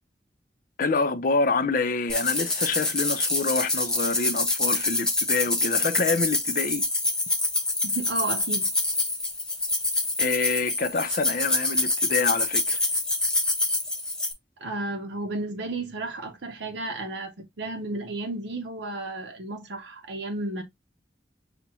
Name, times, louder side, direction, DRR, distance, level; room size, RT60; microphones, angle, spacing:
voice 1, 0.8-6.8 10.2-12.8, left 4 dB, 50° left, 0.5 m, -27 dB
sound 1, 2.1-14.3, left 2 dB, 5° left, 0.6 m, -26 dB
voice 2, 7.9-8.7 14.6-20.6, right 2 dB, 80° right, 0.7 m, -33 dB
6.0 x 2.1 x 2.8 m
head